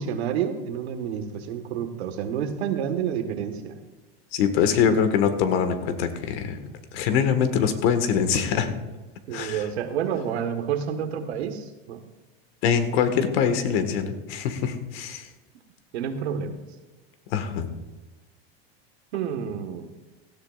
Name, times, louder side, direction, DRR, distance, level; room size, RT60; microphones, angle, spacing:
voice 1, 0.0-3.9 9.3-12.0 15.9-16.6 19.1-19.9, right 8 dB, 85° right, 7 dB, 1.5 m, -29 dB
voice 2, 4.3-6.6 6.9-8.7 9.3-9.7 12.6-15.3 17.3-17.7, left 7 dB, 70° left, 9 dB, 1.6 m, -23 dB
17.5 x 13.0 x 2.4 m, 1.2 s
supercardioid pair, 120°, 32 cm